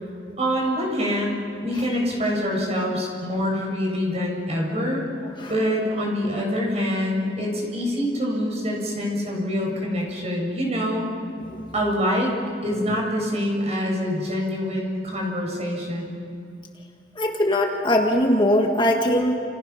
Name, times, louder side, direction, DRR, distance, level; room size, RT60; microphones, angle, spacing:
voice 1, 0.4-5.0 5.5-11.1 11.7-12.3 12.6-16.1, equal, 40° right, -1 dB, 7.0 m, -25 dB
voice 2, 17.2-19.4, left 1 dB, 25° left, 2 dB, 1.8 m, -20 dB
30.0 x 29.0 x 5.9 m, 2.4 s
head